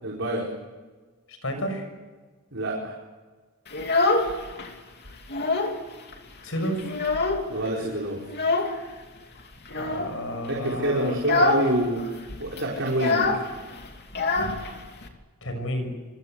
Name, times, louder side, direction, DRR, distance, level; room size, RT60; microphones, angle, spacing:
voice 1, 0.0-0.5 2.5-2.9 7.5-8.2 10.5-13.4, right 1 dB, 60° right, -3 dB, 4.8 m, -27 dB
voice 2, 1.3-1.9 6.4-7.0 9.7-11.2 15.4-15.9, equal, 65° left, 7 dB, 6.8 m, -31 dB
Child speech kid speaking, 3.7-4.7 5.0-5.8 6.1-6.2 6.6-7.7 8.3-8.8 9.7-10.2 10.6-10.8 11.2-11.7 12.0-12.1 12.3-15.1, left 3 dB, 50° left, 3.0 m, -25 dB
26.5 x 25.0 x 8.1 m, 1.3 s
head